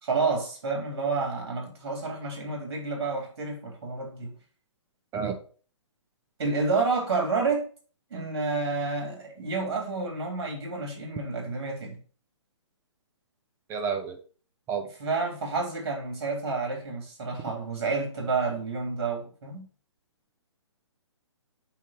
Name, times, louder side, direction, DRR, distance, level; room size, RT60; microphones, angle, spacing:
voice 1, 0.0-4.3 6.4-7.7 8.1-12.0 15.0-19.7, right 4 dB, 55° right, 3.4 m, -29 dB
voice 2, 13.7-14.2 14.7-14.9, right 6 dB, 15° right, 0.8 m, -30 dB
9.3 x 3.6 x 4.6 m
figure-of-eight pair, 135°, 16 cm